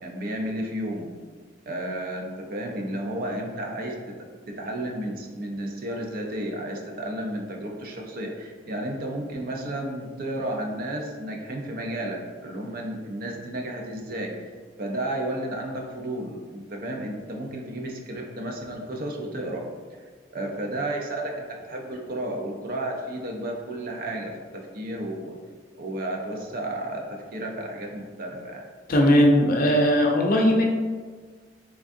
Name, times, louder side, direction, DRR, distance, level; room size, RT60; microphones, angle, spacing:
voice 1, 0.0-1.1 1.7-4.0 4.5-14.5 14.8-19.7 20.3-25.4 25.8-28.6, right 1 dB, 50° right, 1 dB, 0.5 m, -32 dB
voice 2, 28.9-30.6, equal, 50° left, 0 dB, 0.5 m, -18 dB
3.6 x 3.4 x 2.5 m, 1.5 s
head